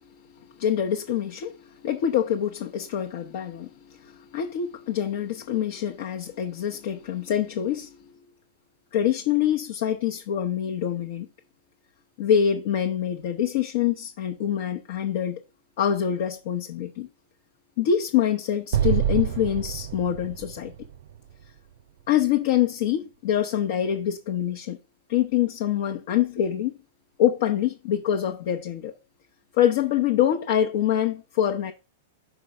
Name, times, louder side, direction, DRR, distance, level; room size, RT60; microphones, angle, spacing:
voice 1, 0.4-8.0 8.9-11.3 12.2-15.4 15.8-17.1 17.8-20.7 22.1-24.8 25.1-26.7 27.2-28.9 29.5-31.7, left 10 dB, 60° left, 1.0 m, -25 dB
Explosion, 18.7-22.0, right 10 dB, 70° right, 0.4 m, -27 dB
6.0 x 4.6 x 5.4 m
hypercardioid pair, 130°, 0 cm